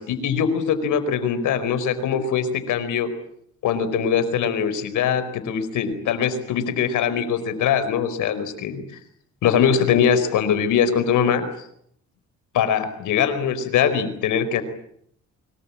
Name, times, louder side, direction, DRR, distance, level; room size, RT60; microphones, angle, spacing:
voice 1, 0.0-3.1 3.6-8.8 9.4-11.5 12.5-14.6, left 7 dB, 80° left, 12 dB, 4.7 m, -22 dB
25.0 x 23.0 x 8.6 m, 0.69 s
cardioid pair, 90°, 30 cm